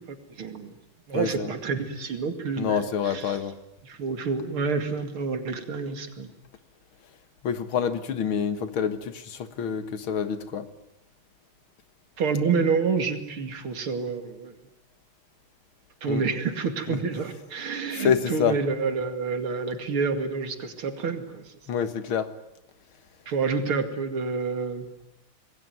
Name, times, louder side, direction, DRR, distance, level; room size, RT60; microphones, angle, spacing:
voice 1, 0.1-0.7 1.1-3.4 3.8-6.3 12.2-14.5 16.0-21.5 23.3-24.9, right 5 dB, 85° right, 7 dB, 3.3 m, -28 dB
voice 2, 1.1-1.5 2.6-3.5 7.4-10.7 16.1-16.2 16.9-17.0 17.9-18.6 21.7-22.3, left 7 dB, 75° left, 11 dB, 2.4 m, -27 dB
26.5 x 20.5 x 9.4 m, 0.85 s
omnidirectional pair, 2.3 m